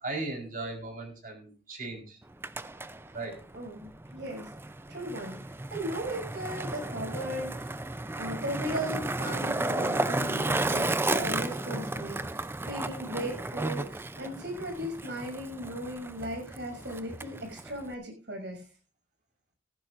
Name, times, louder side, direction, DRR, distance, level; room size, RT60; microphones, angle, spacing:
voice 1, 0.0-2.2 3.1-3.4, right 3 dB, 50° right, 1 dB, 4.3 m, -37 dB
Skateboard, 2.2-17.9, right 2 dB, 15° right, 0.5 m, -33 dB
voice 2, 3.5-4.5 4.9-7.7 8.2-18.6, right 1 dB, 75° right, 3 dB, 6.7 m, -37 dB
16.5 x 14.5 x 2.6 m, 0.37 s
head